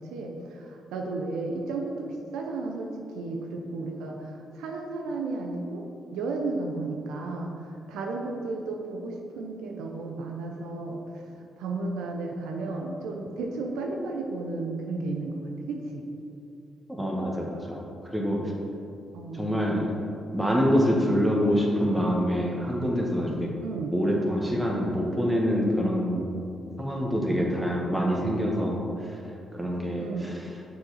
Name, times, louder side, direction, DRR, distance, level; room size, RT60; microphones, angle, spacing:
voice 1, 0.0-5.8 6.1-11.2 11.6-15.4 15.7-16.0 19.1-19.6 23.6-23.9 30.0-30.3, right 3 dB, 80° right, 1 dB, 0.5 m, -33 dB
voice 2, 16.9-17.8 18.1-18.5 19.3-19.9 20.3-23.5 23.9-26.2 26.8-29.2 29.5-30.4, equal, 10° right, -2 dB, 1.5 m, -26 dB
6.5 x 4.8 x 4.1 m, 2.8 s
supercardioid pair, 50°, 0 cm